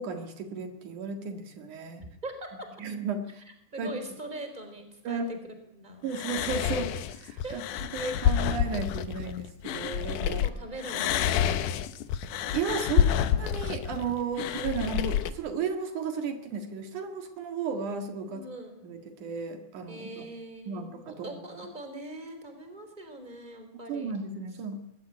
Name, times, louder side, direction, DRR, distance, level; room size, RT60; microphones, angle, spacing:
voice 1, 0.0-2.0 2.8-3.4 3.8-3.9 5.0-5.3 6.0-7.6 7.9-10.4 12.5-18.4 18.8-20.3 20.7-21.3 23.9-24.8, right 5 dB, 75° right, 6 dB, 3.3 m, -34 dB
voice 2, 2.2-2.7 3.7-5.4 5.7-6.1 7.4-7.9 10.3-11.6 18.3-18.8 19.9-24.1, right 2 dB, 15° right, 7 dB, 3.9 m, -42 dB
sound 1, 6.1-10.5 10.8-15.3, left 10 dB, 85° left, 2.5 m, -28 dB
21.0 x 16.5 x 9.9 m, 0.81 s
omnidirectional pair, 3.6 m